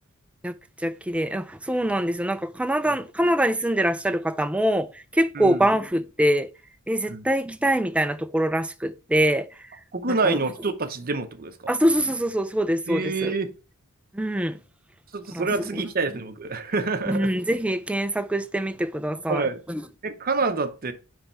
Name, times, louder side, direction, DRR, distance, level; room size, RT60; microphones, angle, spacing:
voice 1, 0.8-6.5 6.9-9.5 10.1-10.4 11.7-13.3 14.1-14.6 15.3-15.5 15.7-15.8 17.1-19.8, right 1 dB, 5° right, 0.4 m, -24 dB
voice 2, 5.3-5.7 7.1-7.3 9.9-11.7 12.9-13.5 15.1-17.3 19.3-19.6 20.0-20.9, right 3 dB, 45° right, 0.8 m, -27 dB
9.9 x 3.4 x 4.1 m
head